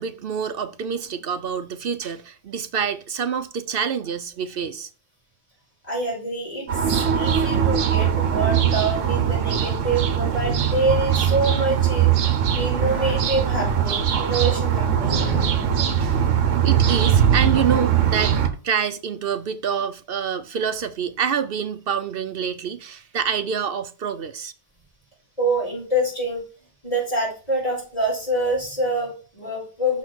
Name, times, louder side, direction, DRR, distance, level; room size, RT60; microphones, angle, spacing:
voice 1, 0.0-4.9 16.0-16.2 16.6-18.4 18.6-24.5, right 7 dB, 55° right, 0.7 m, -27 dB
voice 2, 5.8-15.8 25.4-26.4 26.8-30.0, right 1 dB, 25° left, 4.8 m, -26 dB
sound 1, 6.7-18.5, right 9 dB, 70° right, 1.2 m, -21 dB
6.4 x 4.2 x 6.2 m
omnidirectional pair, 1.3 m